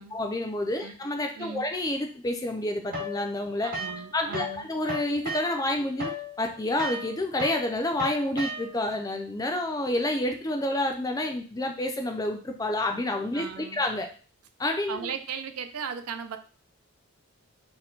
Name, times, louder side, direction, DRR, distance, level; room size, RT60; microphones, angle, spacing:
voice 1, 0.0-3.7 4.1-6.1 6.4-14.1 14.6-15.1, left 1 dB, 15° left, 4 dB, 0.4 m, -29 dB
voice 2, 1.3-1.7 3.6-4.7 13.3-13.8 14.9-16.4, right 6 dB, 85° right, 8 dB, 0.5 m, -37 dB
sound 1, 2.9-4.6 4.8-8.9, left 1 dB, 40° right, 0.8 m, -35 dB
4.3 x 2.1 x 3.8 m, 0.39 s
head